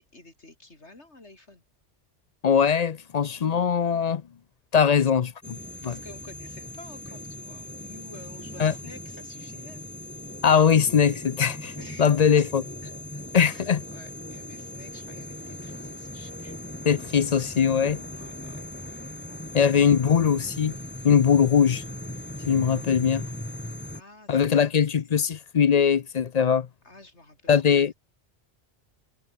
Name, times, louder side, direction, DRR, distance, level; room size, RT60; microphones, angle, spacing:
voice 1, 0.0-1.6 4.8-5.1 5.6-9.9 11.8-12.5 12.8-16.6 18.1-18.6 19.2-19.4 23.9-24.6 24.9-25.0 26.8-27.9, left 2 dB, 70° left, 4.7 m, -49 dB
voice 2, 2.4-4.2 4.7-5.6 5.8-6.0 8.6-8.7 10.4-12.6 13.3-13.8 16.9-18.0 19.5-20.7 21.0-21.8 22.5-23.2 24.3-26.7 27.5-27.9, left 7 dB, 45° left, 0.6 m, -21 dB
sound 1, 5.4-24.0, left 1 dB, 10° left, 1.6 m, -39 dB
omnidirectional pair, 1.2 m